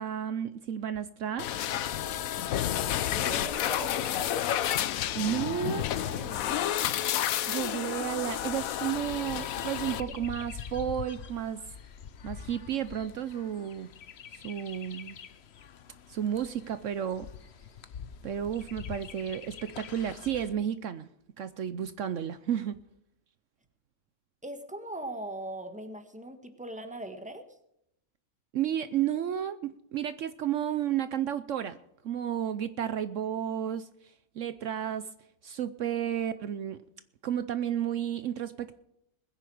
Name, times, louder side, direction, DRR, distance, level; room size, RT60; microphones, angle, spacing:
voice 1, 0.0-1.5 5.1-5.8 7.5-11.6 12.2-13.9 14.3-15.2 16.1-17.3 18.2-21.1 21.4-22.8 28.5-31.8 32.0-33.9 34.4-35.1 35.4-36.8 37.2-38.8, right 10 dB, 65° right, 13 dB, 1.0 m, -32 dB
sound 1, 1.4-10.0, left 11 dB, 85° left, 1.1 m, -30 dB
Chirp tweet, 2.5-20.5, left 7 dB, 55° left, 1.0 m, -46 dB
voice 2, 3.0-4.8 6.0-6.8 10.1-10.4 24.4-27.4 36.4-36.5, right 1 dB, 5° right, 7 dB, 1.6 m, -41 dB
21.0 x 10.0 x 4.9 m, 0.79 s
omnidirectional pair, 1.4 m